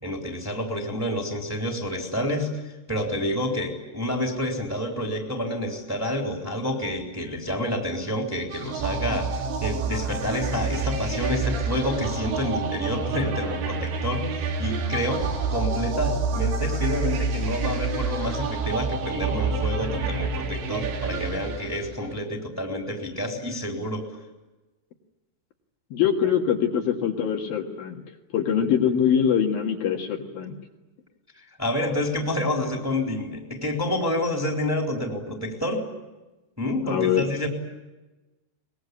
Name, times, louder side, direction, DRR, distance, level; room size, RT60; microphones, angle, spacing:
voice 1, 0.0-2.5 2.9-15.2 15.5-24.0 31.6-35.8 36.6-37.5, left 1 dB, 5° right, 2 dB, 3.1 m, -28 dB
sound 1, 8.5-22.2, right 4 dB, 85° right, 4.8 m, -28 dB
voice 2, 25.9-28.0 28.3-30.6 36.8-37.3, left 8 dB, 65° left, 1 dB, 3.4 m, -23 dB
24.0 x 21.5 x 9.7 m, 1.1 s
omnidirectional pair, 5.0 m